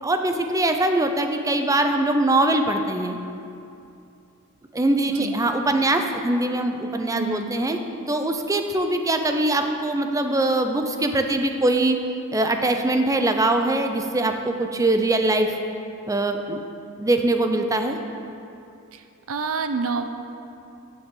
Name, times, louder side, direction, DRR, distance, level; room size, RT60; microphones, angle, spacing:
voice 1, 0.0-3.2 4.7-7.8 8.1-12.0 12.3-15.6 16.1-16.6 17.0-18.0, right 2 dB, 15° right, 6 dB, 0.6 m, -22 dB
voice 2, 7.1-7.5 18.9-19.0 19.3-20.1, right 4 dB, 70° right, 8 dB, 0.7 m, -27 dB
14.0 x 7.1 x 3.8 m, 2.6 s
head